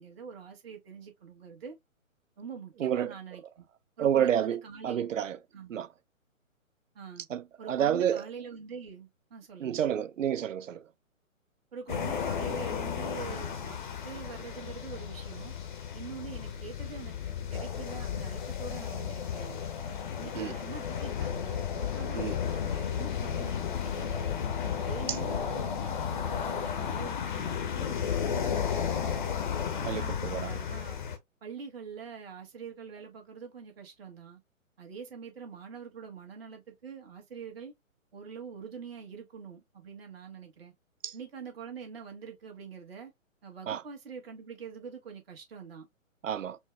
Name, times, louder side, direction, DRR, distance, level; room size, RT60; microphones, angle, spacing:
voice 1, 0.0-1.8 2.4-3.7 4.0-5.1 5.5-5.7 6.9-7.3 7.6-9.8 11.7-15.5 15.9-19.6 20.2-24.3 24.6-29.1 29.7-31.0 31.4-34.4 34.8-37.7 38.1-40.7 41.1-43.1 43.4-45.9, right 6 dB, 45° right, 1.6 m, -45 dB
voice 2, 4.0-4.6 4.8-5.4 5.7-5.9 7.3-7.4 7.7-8.2 9.6-10.8 20.4-20.5 22.2-22.3 29.9-30.5 43.7-43.8 46.2-46.6, right 9 dB, 70° right, 0.5 m, -29 dB
sound 1, 11.9-31.2, left 8 dB, 35° left, 0.7 m, -33 dB
4.4 x 2.1 x 3.4 m
figure-of-eight pair, 135°, 41 cm